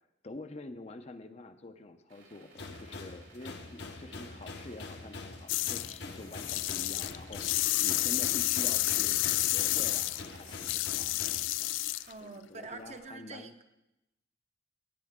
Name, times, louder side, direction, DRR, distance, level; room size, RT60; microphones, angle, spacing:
voice 1, 0.2-11.1 11.6-11.8 12.2-13.5, left 2 dB, 35° left, 8 dB, 0.6 m, -47 dB
sound 1, 2.1-12.1, right 3 dB, 85° right, 2.9 m, -58 dB
sound 2, 2.5-11.5, left 3 dB, 60° left, 1.0 m, -45 dB
sound 3, 5.5-6.0 6.3-12.1, left 17 dB, 85° left, 0.3 m, -30 dB
voice 2, 12.1-13.6, right 3 dB, 35° right, 7 dB, 0.7 m, -45 dB
18.0 x 8.8 x 3.6 m, 0.90 s
head